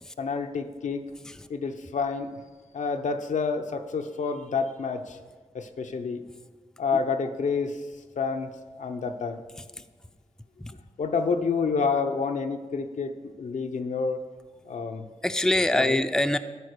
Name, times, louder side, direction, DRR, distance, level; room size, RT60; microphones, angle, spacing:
voice 1, 0.2-1.0 1.5-2.4 2.7-5.2 5.5-6.2 6.8-7.8 8.2-8.5 8.8-9.4 11.0-14.2 14.7-15.0 15.7-16.0, left 5 dB, 75° left, 6 dB, 0.8 m, -28 dB
voice 2, 15.2-16.4, left 1 dB, 5° left, 9 dB, 0.5 m, -24 dB
13.0 x 4.5 x 6.7 m, 1.4 s
cardioid pair, 55°, 13 cm